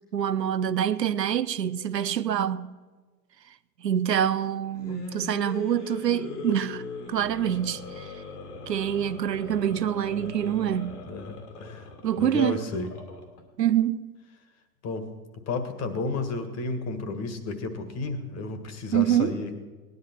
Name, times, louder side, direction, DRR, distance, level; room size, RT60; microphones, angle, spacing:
voice 1, 0.1-2.7 3.8-8.1 8.7-11.0 12.0-12.6 13.6-14.1 18.9-19.3, right 10 dB, 85° right, 0.6 m, -26 dB
sound 1, 4.6-13.4, left 4 dB, 70° left, 2.4 m, -40 dB
voice 2, 11.1-11.9 12.2-12.9 14.8-15.1 15.5-19.6, left 3 dB, 30° left, 1.6 m, -32 dB
18.0 x 11.0 x 4.5 m
figure-of-eight pair, 90°, 48 cm